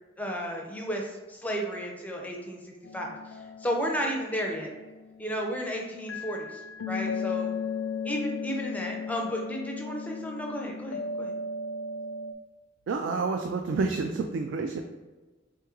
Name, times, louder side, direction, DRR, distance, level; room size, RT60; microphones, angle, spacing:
voice 1, 0.2-3.2 3.6-4.7 5.2-6.6 6.9-7.5 8.0-11.3, equal, 10° left, 0 dB, 0.4 m, -33 dB
sound 1, 2.8-5.6 6.1-12.3, left 4 dB, 85° left, 0.4 m, -36 dB
voice 2, 12.9-14.8, right 4 dB, 70° right, 5 dB, 0.3 m, -29 dB
3.7 x 3.5 x 3.0 m, 1.3 s
head